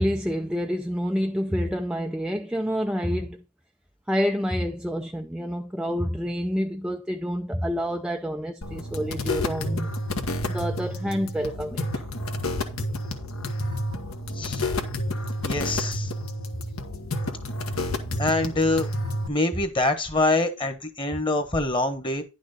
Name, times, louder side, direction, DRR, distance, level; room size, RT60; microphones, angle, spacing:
voice 1, 0.0-3.4 4.1-9.9 10.5-11.8, equal, 5° right, 0.4 m, -28 dB
sound 1, 8.6-19.3, left 1 dB, 70° left, 1.5 m, -30 dB
voice 2, 15.4-16.1 18.2-18.9 19.3-22.2, left 2 dB, 20° left, 1.4 m, -25 dB
10.5 x 6.2 x 4.0 m
head